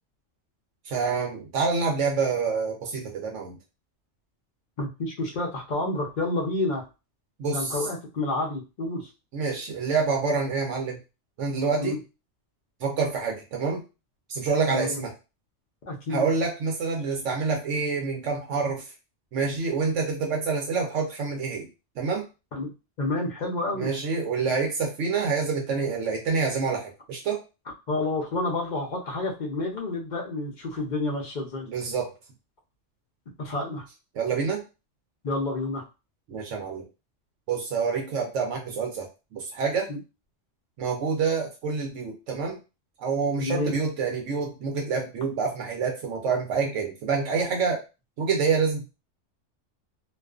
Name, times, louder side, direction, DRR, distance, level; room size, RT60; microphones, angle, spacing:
voice 1, 0.9-3.6 7.4-7.8 9.3-11.0 11.4-12.0 12.8-13.8 14.3-15.1 16.1-18.8 19.3-21.7 22.0-22.3 23.7-27.4 31.7-32.1 34.1-34.6 36.3-36.9 37.5-39.1 39.3-39.9 40.8-42.6 43.0-47.8 48.2-48.8, right 5 dB, 80° right, 0 dB, 1.0 m, -27 dB
voice 2, 4.8-6.8 7.5-9.1 11.8-12.0 14.7-15.0 15.9-16.3 22.5-22.7 23.0-23.9 27.7-31.7 33.4-33.9 35.2-35.8 39.9-40.0 43.4-43.7, left 2 dB, 50° left, 0 dB, 0.6 m, -29 dB
2.4 x 2.3 x 2.3 m, 0.29 s
omnidirectional pair, 1.3 m